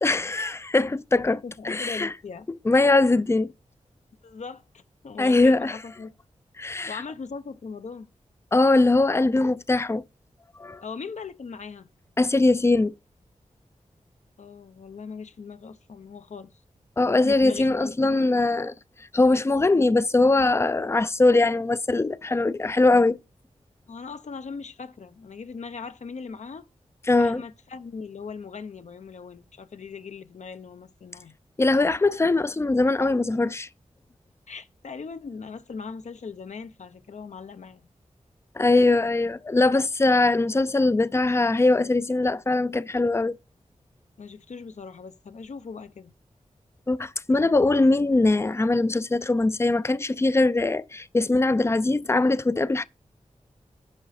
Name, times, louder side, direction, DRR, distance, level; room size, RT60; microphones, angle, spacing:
voice 1, 0.0-2.1 2.5-3.5 5.2-5.7 6.6-7.0 8.5-10.0 10.6-10.8 12.2-12.9 17.0-18.7 19.1-23.2 27.1-27.4 31.6-33.7 38.6-43.4 46.9-52.8, left 2 dB, 20° left, 0.5 m, -21 dB
voice 2, 1.2-2.5 4.2-6.1 6.9-8.1 10.8-11.9 14.4-16.6 17.2-18.1 23.9-26.6 27.2-31.3 34.5-37.9 44.2-46.1, left 5 dB, 70° left, 0.8 m, -39 dB
10.5 x 6.0 x 4.2 m
wide cardioid pair, 70°, 12 cm